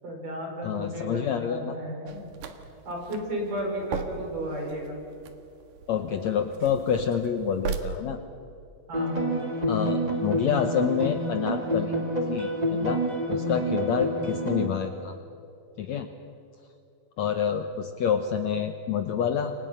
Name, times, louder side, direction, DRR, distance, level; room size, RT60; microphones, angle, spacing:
voice 1, 0.0-2.2 2.8-5.0 8.9-9.3, equal, 60° right, -1 dB, 7.9 m, -33 dB
voice 2, 0.6-1.8 5.9-8.2 9.7-13.0 13.3-15.2 15.8-16.1 17.2-19.5, left 8 dB, 65° left, 7 dB, 1.8 m, -28 dB
sound 1, 2.1-7.8, right 7 dB, 80° right, 3.4 m, -39 dB
sound 2, 8.9-14.7, right 1 dB, 15° right, 1.8 m, -28 dB
29.5 x 24.5 x 5.8 m, 2.6 s
omnidirectional pair, 4.2 m